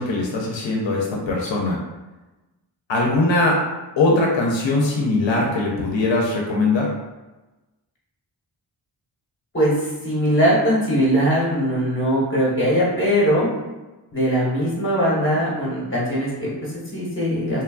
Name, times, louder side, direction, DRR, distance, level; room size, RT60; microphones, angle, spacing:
voice 1, 0.0-1.8 2.9-3.6 4.0-6.9, left 2 dB, 80° left, -2 dB, 0.6 m, -21 dB
voice 2, 9.5-13.5 14.1-17.6, equal, 25° left, -6 dB, 1.1 m, -21 dB
3.0 x 2.2 x 2.3 m, 1.1 s
wide cardioid pair, 105°, 44 cm